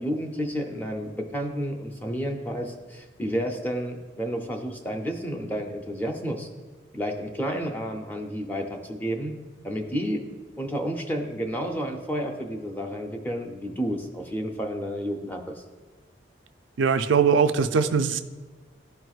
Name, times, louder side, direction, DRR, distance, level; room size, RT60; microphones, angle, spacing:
voice 1, 0.0-6.5 6.9-9.3 9.6-10.2 10.6-15.5, equal, 10° left, 2 dB, 0.6 m, -31 dB
voice 2, 16.8-18.2, right 6 dB, 85° right, 8 dB, 0.4 m, -21 dB
12.5 x 4.5 x 2.4 m, 1.3 s
head